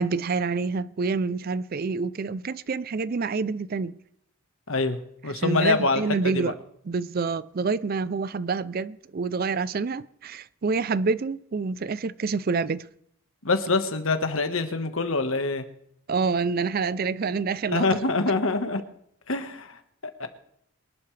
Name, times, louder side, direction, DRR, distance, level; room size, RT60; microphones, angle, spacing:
voice 1, 0.0-3.9 5.3-6.6 6.9-12.9 16.1-17.9, right 4 dB, 45° right, 0.4 m, -27 dB
voice 2, 4.7-6.5 13.4-15.7 17.7-18.8 19.3-19.8 20.2-20.3, left 3 dB, 70° left, 1.5 m, -25 dB
25.0 x 11.5 x 3.3 m
head